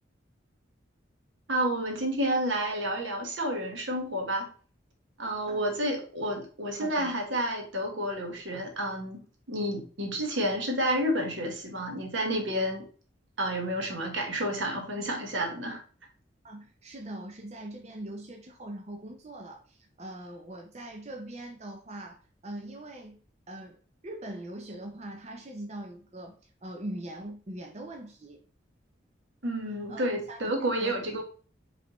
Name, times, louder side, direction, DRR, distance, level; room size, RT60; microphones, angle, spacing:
voice 1, 1.5-4.5 5.2-9.2 9.5-12.8 13.4-15.8 29.4-31.2, right 1 dB, 80° right, 1.3 m, -30 dB
voice 2, 6.8-7.2 16.4-23.2 23.5-28.4 29.9-30.5 30.8-31.2, right 1 dB, 35° right, 0.6 m, -42 dB
5.0 x 3.4 x 3.0 m
head